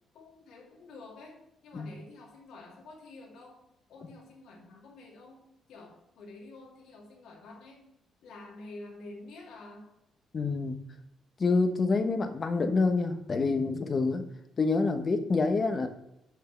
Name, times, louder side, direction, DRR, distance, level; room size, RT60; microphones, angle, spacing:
voice 1, 0.1-3.6 3.9-7.9 8.2-9.9, left 2 dB, 80° left, -1 dB, 2.4 m, -49 dB
voice 2, 10.3-10.8 11.4-14.2 14.6-15.9, left 3 dB, 40° left, 7 dB, 1.1 m, -27 dB
6.9 x 5.6 x 6.5 m, 0.84 s
cardioid pair, 90°, 0 cm